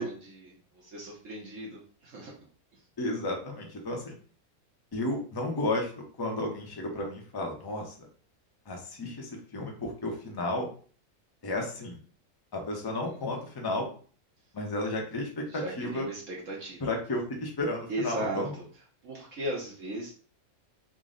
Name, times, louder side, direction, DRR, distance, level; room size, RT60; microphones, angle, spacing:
voice 1, 0.0-2.3 2.7-2.8 10.1-10.2 13.1-13.2 15.5-16.8 17.9-18.6 19.0-20.1, right 1 dB, 60° right, -4 dB, 1.2 m, -37 dB
voice 2, 3.0-4.2 4.9-5.9 6.2-8.1 8.7-10.7 11.4-12.0 12.5-13.9 14.5-16.0 16.8-18.5, left 2 dB, 30° left, 1 dB, 0.4 m, -33 dB
3.8 x 2.0 x 3.7 m, 0.42 s
omnidirectional pair, 1.5 m